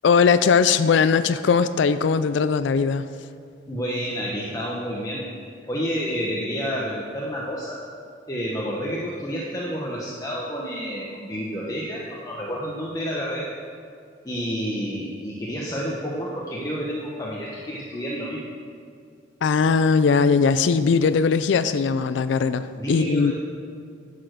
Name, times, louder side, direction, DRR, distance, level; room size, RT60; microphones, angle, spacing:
voice 1, 0.0-3.1 19.4-23.3, left 5 dB, 65° left, 12 dB, 0.4 m, -19 dB
voice 2, 3.7-5.2 5.6-7.8 8.3-13.5 14.2-18.5 22.7-23.3, equal, 20° left, -5 dB, 1.0 m, -29 dB
11.0 x 6.9 x 6.3 m, 2.3 s
head